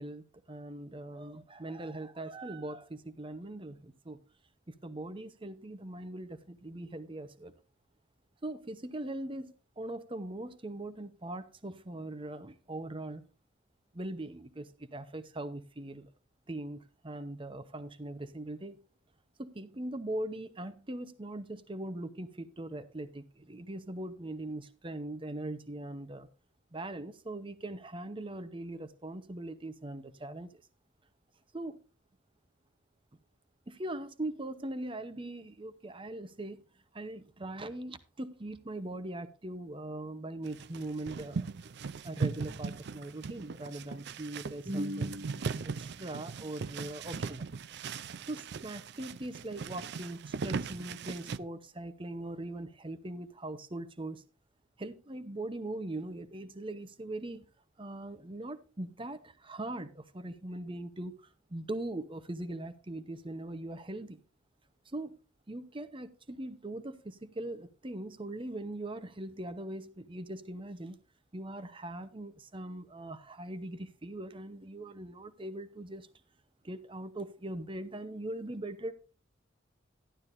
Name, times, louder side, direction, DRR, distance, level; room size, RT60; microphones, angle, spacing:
voice 1, 0.0-4.2 4.7-7.5 8.4-13.2 13.9-16.1 16.5-18.8 19.4-26.3 26.7-30.5 31.5-31.8 33.7-36.6 36.9-41.5 42.0-47.5 48.3-54.2 54.8-57.4 57.8-64.2 64.9-65.2 65.5-71.0 71.3-76.1 76.6-78.9, right 1 dB, 25° right, 0.8 m, -41 dB
sound 1, 40.5-51.4, right 5 dB, 60° right, 0.4 m, -38 dB
12.5 x 11.5 x 2.6 m
head